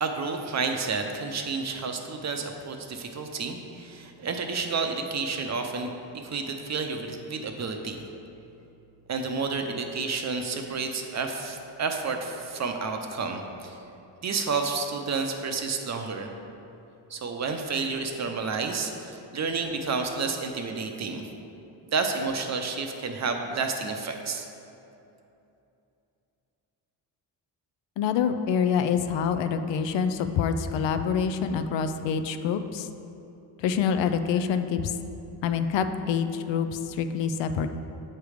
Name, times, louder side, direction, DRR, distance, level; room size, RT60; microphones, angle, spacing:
voice 1, 0.0-8.0 9.1-13.8 14.2-16.3 17.1-21.3 21.9-24.5, right 4 dB, 40° right, 4 dB, 0.6 m, -30 dB
voice 2, 28.0-32.9 33.6-34.9 35.4-37.7, left 7 dB, 70° left, 9 dB, 0.5 m, -26 dB
8.1 x 3.3 x 4.9 m, 2.8 s
cardioid pair, 105°, 45 cm